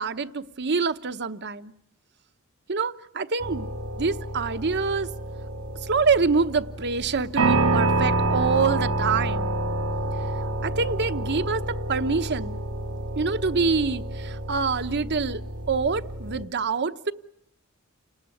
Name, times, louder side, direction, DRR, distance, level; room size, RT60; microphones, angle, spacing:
voice 1, 0.0-1.7 2.7-3.7 4.0-5.1 5.8-9.6 10.6-12.6 13.2-15.4 15.7-17.1, right 4 dB, 50° right, 1.0 m, -26 dB
sound 1, 3.4-16.4, right 2 dB, 85° right, 2.5 m, -28 dB
29.5 x 20.0 x 9.8 m
head